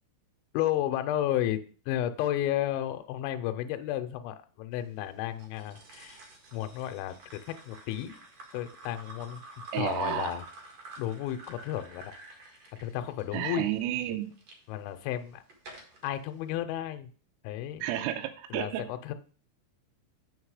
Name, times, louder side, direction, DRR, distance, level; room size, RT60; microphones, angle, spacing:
voice 1, 0.5-1.6 1.9-6.2 6.5-7.2 7.7-8.1 8.5-9.4 9.7-10.5 11.0-12.1 12.8-13.7 14.7-15.4 16.0-17.1 17.4-17.8 18.5-19.1, left 12 dB, 80° left, 7 dB, 3.0 m, -32 dB
sound 1, 5.4-14.6 15.1-16.1, right 2 dB, 60° right, 1.8 m, -50 dB
voice 2, 9.7-10.4 13.3-14.3 17.8-18.8, right 12 dB, 85° right, 6 dB, 2.5 m, -31 dB
7.7 x 5.9 x 4.8 m, 0.40 s
omnidirectional pair, 5.5 m